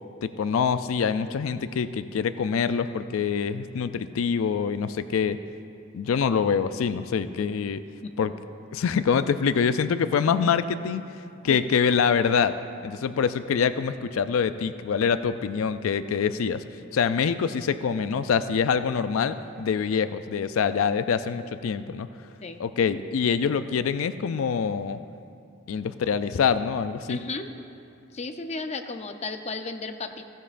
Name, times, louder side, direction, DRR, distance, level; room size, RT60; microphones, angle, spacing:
voice 1, 0.2-5.4 5.9-7.8 8.2-8.3 8.7-11.0 11.4-12.5 12.8-16.6 16.9-22.1 22.6-25.0 25.7-27.2, left 6 dB, 85° left, 12 dB, 0.4 m, -25 dB
voice 2, 27.1-27.5 28.1-30.3, left 3 dB, 30° left, 7 dB, 0.6 m, -34 dB
16.0 x 15.0 x 2.5 m, 2.6 s
head